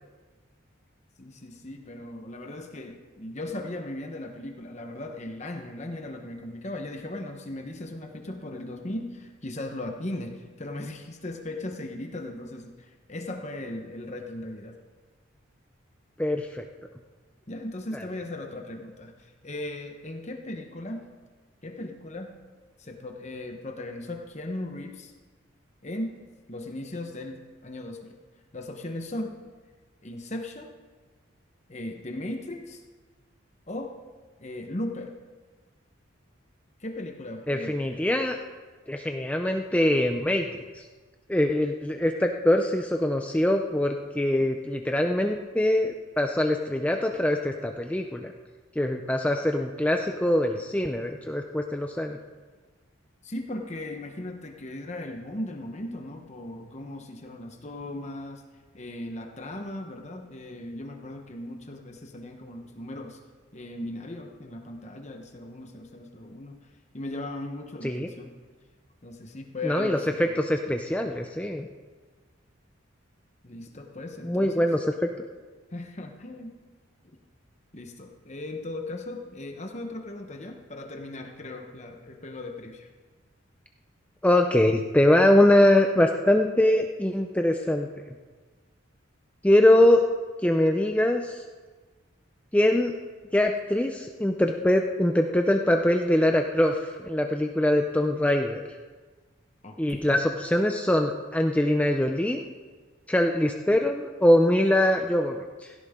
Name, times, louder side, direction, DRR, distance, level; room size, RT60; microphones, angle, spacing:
voice 1, 1.2-14.8 17.5-21.1 21.6-22.3 22.8-25.1 25.8-26.2 26.5-28.1 28.5-29.4 30.0-30.7 31.7-32.8 33.7-34.0 34.4-35.1 36.8-38.0 53.2-58.4 58.7-63.2 63.5-66.6 66.9-68.3 69.0-70.3 70.7-70.8 73.4-74.7 75.7-76.6 77.7-82.9 99.6-100.2, left 1 dB, 35° left, 3 dB, 1.0 m, -37 dB
voice 2, 16.2-16.6 17.9-18.0 37.5-38.4 38.9-40.5 40.7-40.8 41.3-48.3 48.8-52.2 67.8-68.1 69.6-70.0 70.4-71.7 74.2-75.1 84.2-87.9 89.4-90.0 90.4-91.4 92.5-92.9 93.3-98.6 99.8-102.4 103.1-105.7, left 1 dB, 5° left, 3 dB, 0.5 m, -23 dB
17.0 x 16.5 x 3.7 m, 1.4 s
head